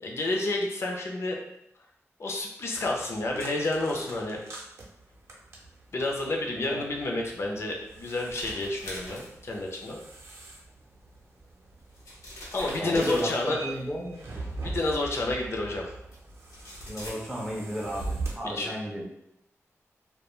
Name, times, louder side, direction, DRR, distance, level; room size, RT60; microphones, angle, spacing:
voice 1, 0.0-1.4 2.2-4.4 5.9-10.0 12.5-13.8 14.6-15.9 18.5-18.7, left 2 dB, 55° left, 0 dB, 0.5 m, -30 dB
sound 1, 2.7-18.3, right 3 dB, 55° right, 0.5 m, -42 dB
sound 2, 7.7-9.8 11.2-11.3 11.8-13.8 14.9-15.0 16.1-16.2 16.4-17.1, equal, 80° left, 0.8 m, -42 dB
voice 2, 12.8-13.3 13.6-14.2 16.9-19.0, equal, 5° right, -3 dB, 0.4 m, -33 dB
2.2 x 2.1 x 3.0 m, 0.80 s
wide cardioid pair, 135°, 5 cm